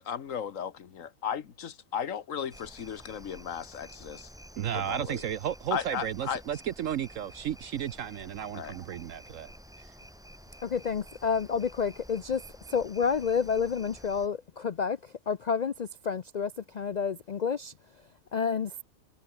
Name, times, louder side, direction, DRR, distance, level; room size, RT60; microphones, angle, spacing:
voice 1, 0.0-4.3 4.7-5.2 5.7-6.4 8.5-8.7, left 8 dB, 65° left, 1.5 m, -35 dB
sound 1, 2.5-14.3, equal, ahead, 3.0 m, -51 dB
voice 2, 4.6-9.5 9.8-9.9, right 10 dB, 65° right, 1.0 m, -33 dB
voice 3, 10.6-12.4 12.7-17.7 18.3-18.8, left 6 dB, 80° left, 0.3 m, -29 dB
omnidirectional pair, 1.5 m